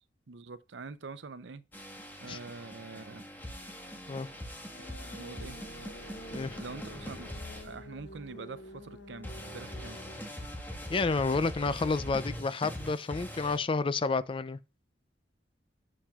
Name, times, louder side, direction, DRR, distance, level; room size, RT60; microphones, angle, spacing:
voice 1, 0.3-1.6 2.2-3.2 4.8-5.6 6.4-10.0, right 4 dB, 75° right, 0.6 m, -45 dB
sound 1, 1.7-8.4 9.2-13.6, equal, 10° left, 1.5 m, -42 dB
sound 2, 4.7-10.2, left 1 dB, 70° left, 1.3 m, -49 dB
voice 2, 10.9-14.6, left 4 dB, 30° left, 0.4 m, -30 dB
8.6 x 7.3 x 2.4 m
head